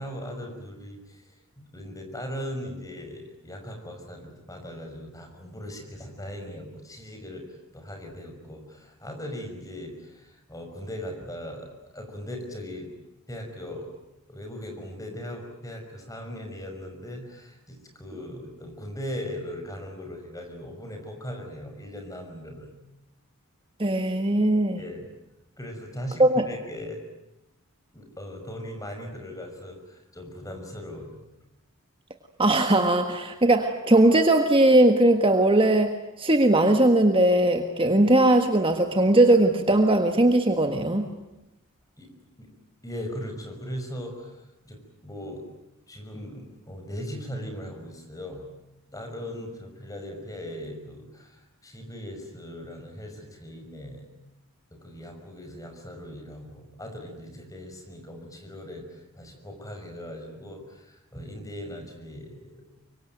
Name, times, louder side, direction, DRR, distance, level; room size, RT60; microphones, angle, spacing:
voice 1, 0.0-13.0 13.3-13.9 14.3-22.7 24.8-25.1 25.6-27.0 27.9-31.2 42.0-42.1 42.4-42.5 42.8-45.5 45.9-48.5 48.9-54.1 54.7-62.6, equal, 15° left, 4 dB, 5.8 m, -39 dB
voice 2, 23.8-24.8 26.2-26.4 32.4-41.1, right 1 dB, 25° right, 6 dB, 1.6 m, -19 dB
25.0 x 24.0 x 9.3 m, 0.93 s
head